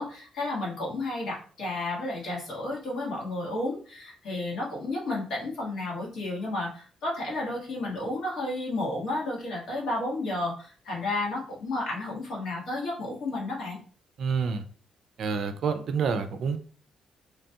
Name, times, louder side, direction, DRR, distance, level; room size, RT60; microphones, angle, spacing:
voice 1, 0.0-13.8, left 2 dB, 70° left, -4 dB, 1.5 m, -32 dB
voice 2, 14.2-14.6 15.2-16.6, right 5 dB, 65° right, 9 dB, 0.4 m, -28 dB
3.0 x 2.3 x 2.7 m, 0.41 s
cardioid pair, 90°, 0 cm